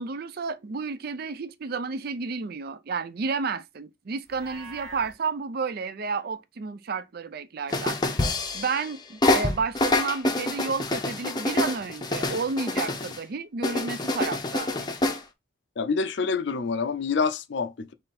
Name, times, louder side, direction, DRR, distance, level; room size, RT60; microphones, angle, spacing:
voice 1, 0.0-8.0 8.5-14.9, right 4 dB, 50° right, 0.4 m, -31 dB
Livestock farm animals working animals, 4.2-5.1, right 3 dB, 80° right, 1.6 m, -43 dB
sound 1, 7.7-8.9 9.2-13.2 13.6-15.2, left 2 dB, 20° left, 0.6 m, -26 dB
voice 2, 15.8-17.9, left 5 dB, 60° left, 0.5 m, -27 dB
3.7 x 3.3 x 4.1 m
head